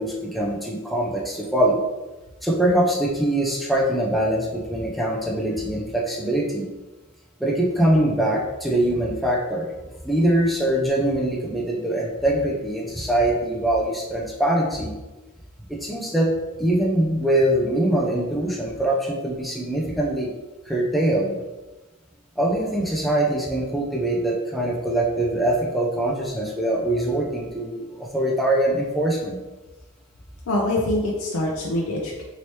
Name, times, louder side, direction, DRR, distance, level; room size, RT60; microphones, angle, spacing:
voice 1, 0.0-1.8 2.4-6.7 7.4-9.7 10.0-15.0 15.7-16.3 16.6-20.3 20.7-21.4 22.4-29.4, right 1 dB, ahead, -2 dB, 0.3 m, -23 dB
voice 2, 30.5-32.2, left 1 dB, 65° left, -1 dB, 0.5 m, -24 dB
3.1 x 2.8 x 3.0 m, 1.1 s
head